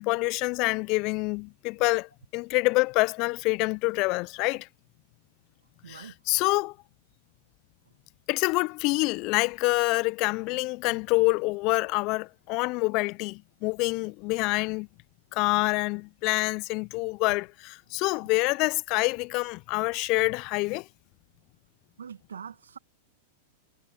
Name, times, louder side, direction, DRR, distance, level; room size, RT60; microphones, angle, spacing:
voice 1, 0.0-4.7 5.9-6.7 8.3-14.9 15.3-20.9, left 26 dB, 45° left, 0.6 m, -26 dB
voice 2, 5.8-6.1 22.0-22.8, right 7 dB, 80° right, 2.1 m, -43 dB
hypercardioid pair, 100°, 0 cm